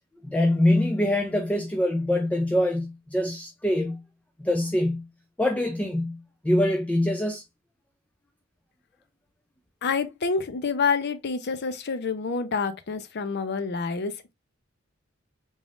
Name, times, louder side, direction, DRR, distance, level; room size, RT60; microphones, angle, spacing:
voice 1, 0.2-4.0 4.4-5.1 5.4-7.4, left 1 dB, 5° left, 0.4 m, -24 dB
voice 2, 9.8-14.3, left 5 dB, 55° left, 0.6 m, -28 dB
3.7 x 3.4 x 2.4 m
head